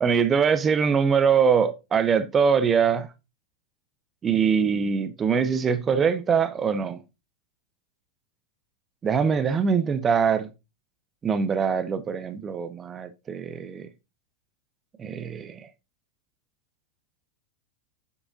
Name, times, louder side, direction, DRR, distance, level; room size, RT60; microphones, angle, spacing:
voice 1, 0.0-3.1 4.2-7.0 9.0-10.5 11.2-13.9 15.0-15.7, right 6 dB, 20° right, 0.6 m, -23 dB
7.0 x 6.9 x 2.5 m
figure-of-eight pair, 90°, 0 cm